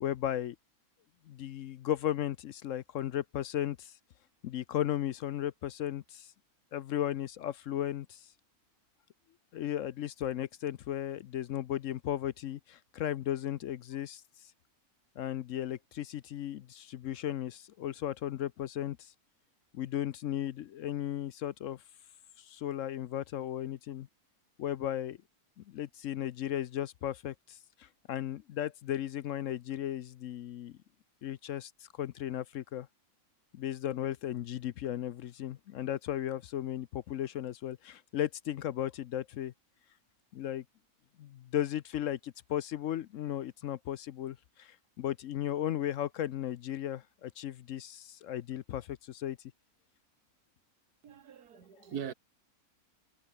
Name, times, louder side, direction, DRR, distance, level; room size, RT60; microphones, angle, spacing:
voice 1, 0.0-0.6 1.3-4.0 4.4-6.3 6.7-8.3 9.5-14.2 15.2-19.1 19.7-21.8 22.4-24.1 24.6-25.2 25.6-30.8 31.2-32.9 33.5-39.5 40.3-40.6 41.2-49.4, left 11 dB, 65° left, 0.9 m, -35 dB
voice 2, 51.0-52.1, right 8 dB, 80° right, 1.8 m, -41 dB
omnidirectional pair, 1.6 m